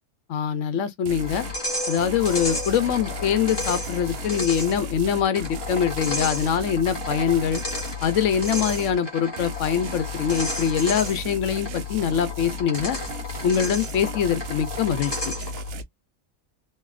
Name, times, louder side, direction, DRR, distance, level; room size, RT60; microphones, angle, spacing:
voice 1, 0.3-1.4 1.9-7.6 8.0-13.0 13.4-15.3, left 8 dB, 70° left, 1.0 m, -24 dB
sound 1, 1.1-1.6 2.0-9.0 9.4-15.8, left 2 dB, 60° right, 0.7 m, -34 dB
sound 2, 1.2-15.7, left 1 dB, 20° left, 1.0 m, -33 dB
3.0 x 2.7 x 2.4 m
omnidirectional pair, 1.4 m